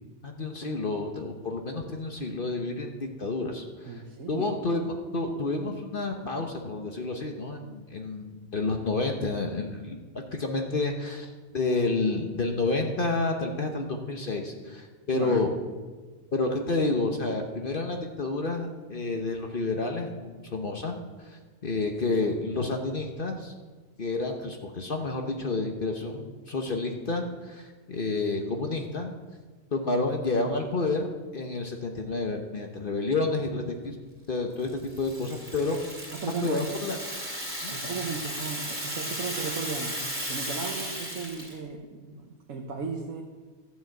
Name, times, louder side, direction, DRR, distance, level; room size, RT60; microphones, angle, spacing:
voice 1, 0.2-4.0 4.3-10.0 10.3-15.5 16.3-21.0 21.2-23.5 24.0-29.1 29.7-34.0 34.3-34.7 35.0-35.8 36.4-37.0 37.6-37.7, left 3 dB, 45° left, 3 dB, 1.1 m, -30 dB
voice 2, 3.8-4.6 6.2-6.3 15.1-15.5 36.1-36.7 37.7-40.0 40.3-43.2, right 5 dB, 75° right, 1 dB, 1.4 m, -36 dB
Rattle (instrument), 34.6-41.6, equal, 10° right, 3.1 m, -35 dB
12.5 x 7.0 x 7.8 m, 1.4 s
omnidirectional pair, 1.4 m